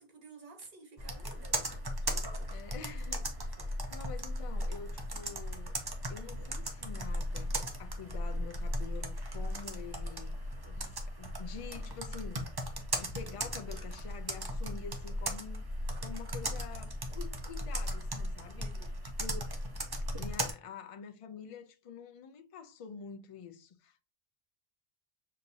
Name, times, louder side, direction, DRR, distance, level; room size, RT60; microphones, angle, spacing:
voice 1, 0.0-2.6 3.2-3.7 18.4-19.0, right 3 dB, 60° right, 1.3 m, -55 dB
Computer keyboard, 1.0-20.5, equal, 25° right, 0.6 m, -37 dB
voice 2, 2.5-3.3 3.9-5.8 6.1-12.5 12.9-18.7 19.2-19.4 20.0-24.0, left 6 dB, 50° left, 0.4 m, -47 dB
6.3 x 2.7 x 2.7 m
omnidirectional pair, 1.1 m